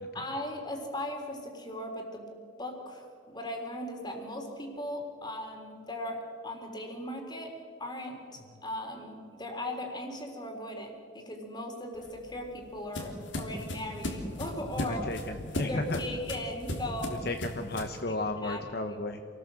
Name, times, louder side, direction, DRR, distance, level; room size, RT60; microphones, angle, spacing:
voice 1, 0.1-2.3 2.6-7.5 7.8-15.0 15.7-17.2 18.1-19.0, left 1 dB, 20° left, 3 dB, 3.7 m, -38 dB
sound 1, 12.0-18.0, left 1 dB, 80° left, 3.4 m, -37 dB
voice 2, 14.8-16.0 17.2-19.2, left 2 dB, 55° left, 6 dB, 1.1 m, -34 dB
28.0 x 18.5 x 7.7 m, 2.3 s
head